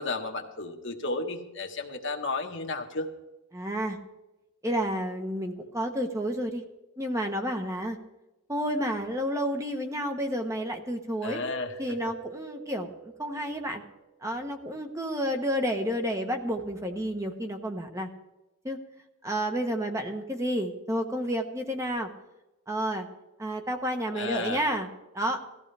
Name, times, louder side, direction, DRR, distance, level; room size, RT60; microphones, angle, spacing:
voice 1, 0.0-3.1 11.2-12.0 24.1-24.6, left 3 dB, 55° left, 4 dB, 1.4 m, -33 dB
voice 2, 3.5-4.0 4.6-6.6 7.0-8.0 8.5-11.4 11.8-13.8 14.2-18.1 18.6-18.8 19.2-22.1 22.7-23.1 23.4-24.9 25.1-25.4, equal, 15° right, 4 dB, 1.0 m, -30 dB
Keyboard (musical), 11.5-14.0, right 5 dB, 5° left, 6.7 m, -46 dB
18.0 x 14.5 x 3.4 m, 0.99 s
head